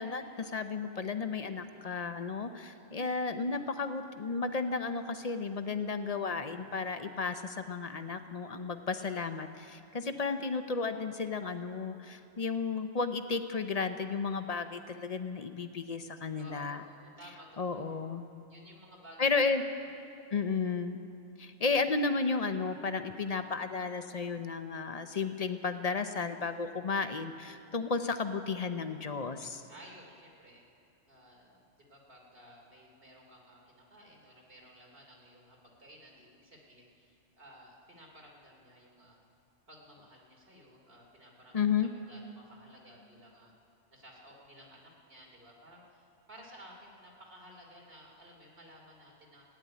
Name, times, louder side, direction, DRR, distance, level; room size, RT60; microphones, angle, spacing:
voice 1, 0.0-16.8 17.6-18.2 19.2-19.6 20.3-21.0 21.4-29.6 41.5-41.9, left 4 dB, 40° left, 9 dB, 0.7 m, -33 dB
voice 2, 2.6-3.0 6.6-6.8 16.4-17.5 17.7-18.0 18.5-19.5 19.8-20.1 29.7-39.2 39.7-41.6 41.9-43.5 43.9-49.4, equal, 50° right, -1 dB, 3.2 m, -55 dB
16.0 x 9.7 x 9.6 m, 2.8 s
omnidirectional pair, 1.3 m